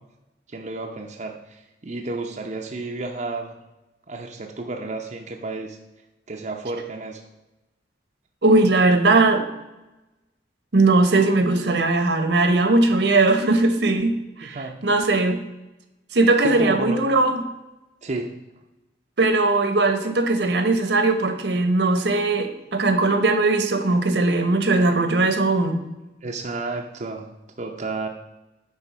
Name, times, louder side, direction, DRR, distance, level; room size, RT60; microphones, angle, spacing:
voice 1, 0.5-3.5 4.1-5.8 6.3-7.2 14.4-14.8 16.4-17.0 18.0-18.3 26.2-27.3 27.6-28.1, right 3 dB, 40° right, 2 dB, 0.6 m, -31 dB
voice 2, 8.4-9.4 10.7-15.4 16.1-17.4 19.2-25.8, right 2 dB, 70° right, 8 dB, 1.0 m, -19 dB
9.6 x 3.8 x 6.1 m, 0.99 s
head